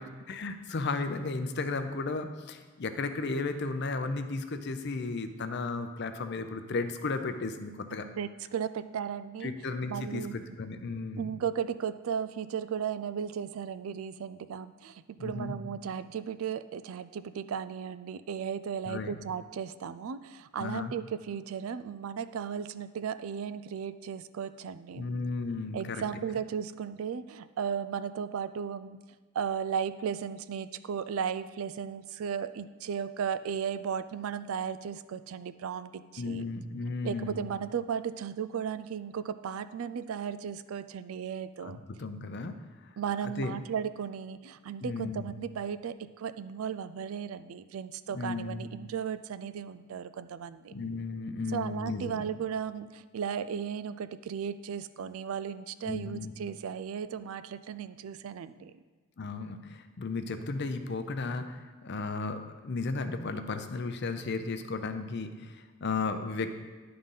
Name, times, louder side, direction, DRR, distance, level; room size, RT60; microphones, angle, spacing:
voice 1, 0.3-8.1 9.4-11.3 15.2-15.5 18.9-19.1 20.6-20.9 25.0-26.0 36.2-37.5 41.6-42.6 43.2-43.5 44.8-45.3 48.1-48.7 50.7-52.2 55.8-56.3 59.2-66.6, left 3 dB, 55° left, 8 dB, 0.6 m, -34 dB
voice 2, 8.2-9.5 9.9-10.4 11.2-25.1 25.7-29.0 29.3-36.4 37.0-41.8 43.0-50.7 51.5-58.7, right 7 dB, 80° right, 13 dB, 0.4 m, -35 dB
10.5 x 3.9 x 5.5 m, 1.4 s
head